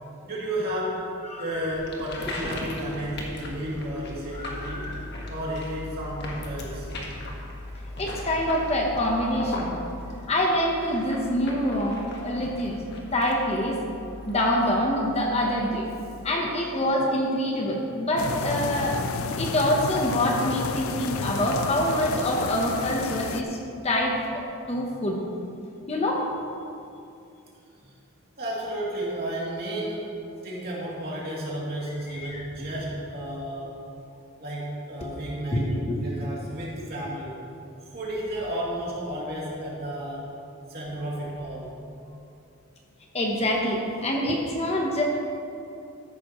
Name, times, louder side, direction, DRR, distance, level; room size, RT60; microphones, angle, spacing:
voice 1, 0.2-1.0 1.4-4.8 5.3-6.9 28.4-30.1 30.4-33.8 34.4-35.7 36.0-37.4 37.9-40.3 40.7-41.7, right 1 dB, 45° right, -6 dB, 2.8 m, -32 dB
voice 2, 1.2-1.7 4.3-5.0 8.0-9.8 10.3-12.8 13.1-13.8 14.2-15.9 16.2-19.0 19.4-23.6 23.8-25.2 25.9-26.3 32.1-32.5 35.0-35.1 35.5-36.0 43.1-45.1, left 1 dB, 30° left, 0 dB, 1.0 m, -26 dB
sound 1, 1.7-16.3, left 1 dB, 50° left, 1.6 m, -38 dB
sound 2, 18.2-23.4, left 4 dB, 75° left, 0.5 m, -31 dB
13.5 x 11.0 x 3.1 m, 2.6 s
head